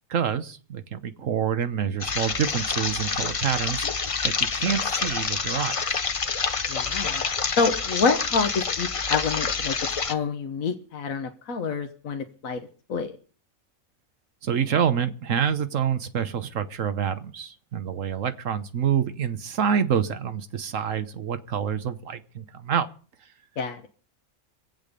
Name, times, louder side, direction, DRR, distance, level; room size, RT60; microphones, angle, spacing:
voice 1, 0.1-3.8 4.2-5.7 14.4-22.9, right 8 dB, 70° right, 11 dB, 1.3 m, -27 dB
sound 1, 2.0-10.1, left 5 dB, 35° left, 0.6 m, -27 dB
voice 2, 6.7-7.2 7.6-9.8 10.1-12.6 12.9-13.1 23.6-23.9, left 5 dB, 80° left, 5 dB, 1.5 m, -27 dB
23.0 x 8.4 x 5.2 m, 0.42 s
omnidirectional pair, 1.4 m